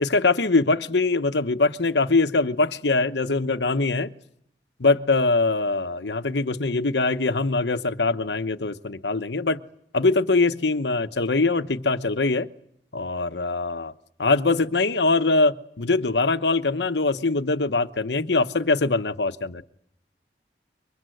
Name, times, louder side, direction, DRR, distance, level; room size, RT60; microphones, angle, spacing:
voice 1, 0.0-4.1 4.8-9.6 9.9-12.5 12.9-13.9 14.2-19.6, left 3 dB, 85° left, 1.1 m, -22 dB
28.0 x 24.5 x 7.9 m
head